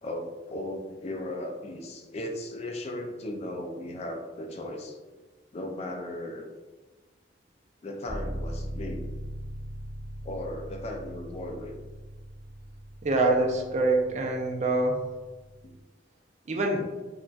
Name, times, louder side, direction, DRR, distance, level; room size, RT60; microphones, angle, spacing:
voice 1, 0.0-5.0 5.5-6.5 7.8-9.0 10.2-11.7 15.6-15.7, left 1 dB, 35° left, 2 dB, 0.3 m, -36 dB
sound 1, 8.1-15.8, equal, 5° right, 1.2 m, -40 dB
voice 2, 13.0-15.0 16.5-16.8, right 2 dB, 40° right, 1 dB, 0.4 m, -25 dB
3.8 x 2.2 x 2.3 m, 1.2 s
head